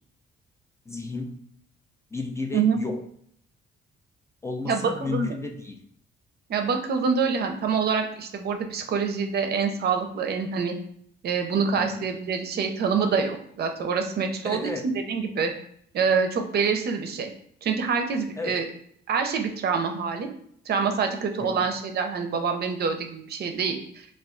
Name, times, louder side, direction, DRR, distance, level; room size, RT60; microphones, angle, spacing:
voice 1, 0.9-1.3 2.1-3.0 4.4-5.8 11.8-12.0 14.4-14.9 18.4-18.6 21.4-21.7, left 3 dB, 15° left, 3 dB, 0.3 m, -33 dB
voice 2, 4.7-5.3 6.5-10.8 11.2-14.7 15.1-15.5 15.9-17.3 17.6-18.7 19.1-20.3 20.7-24.1, right 5 dB, 55° right, 5 dB, 0.5 m, -26 dB
2.3 x 2.3 x 3.5 m, 0.66 s
cardioid pair, 90°, 20 cm